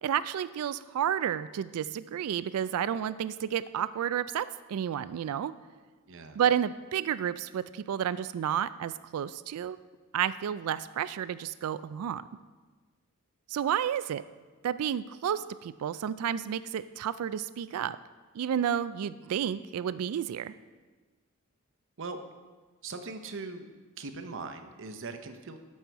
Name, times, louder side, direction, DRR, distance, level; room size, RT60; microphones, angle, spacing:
voice 1, 0.0-5.5 6.4-9.8 10.1-12.2 13.5-14.2 14.6-18.0 18.3-20.5, right 9 dB, 90° right, 15 dB, 0.3 m, -31 dB
voice 2, 6.1-6.4 22.0-22.2 22.8-23.7 24.0-25.6, right 3 dB, 60° right, 8 dB, 0.8 m, -40 dB
12.5 x 5.6 x 4.6 m, 1.3 s
head